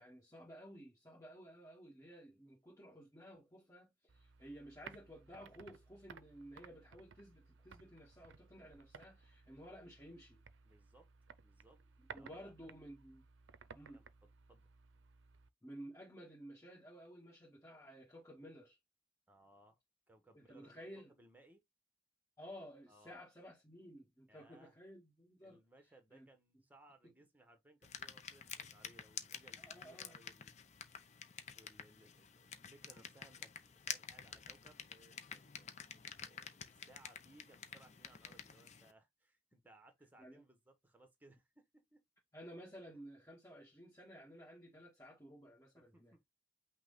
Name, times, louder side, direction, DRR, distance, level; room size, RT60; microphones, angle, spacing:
voice 1, 0.0-10.4 12.0-13.2 13.7-14.0 15.6-18.8 20.3-21.1 22.4-25.6 26.1-26.3 27.0-27.1 29.6-30.2 40.2-40.4 42.3-46.1, equal, 15° left, 1.7 m, -54 dB
sound 1, 4.1-15.5, right 6 dB, 90° right, 0.5 m, -59 dB
voice 2, 10.6-11.1 11.4-12.5 13.9-14.7 19.3-19.8 20.1-21.6 22.9-23.2 24.3-24.7 25.4-30.5 31.5-42.0 42.9-43.0 45.7-46.3, right 2 dB, 10° right, 1.2 m, -65 dB
sound 2, 27.8-38.9, left 7 dB, 40° left, 0.6 m, -50 dB
5.8 x 2.3 x 4.0 m
head